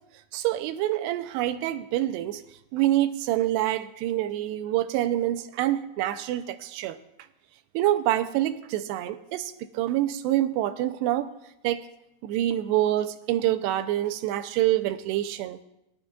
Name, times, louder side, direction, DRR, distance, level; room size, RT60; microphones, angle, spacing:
voice 1, 0.3-2.4 2.7-7.0 7.7-11.3 11.6-11.8 12.2-15.6, right 13 dB, 85° right, 9 dB, 2.8 m, -26 dB
22.0 x 12.5 x 2.4 m, 0.86 s
omnidirectional pair, 4.8 m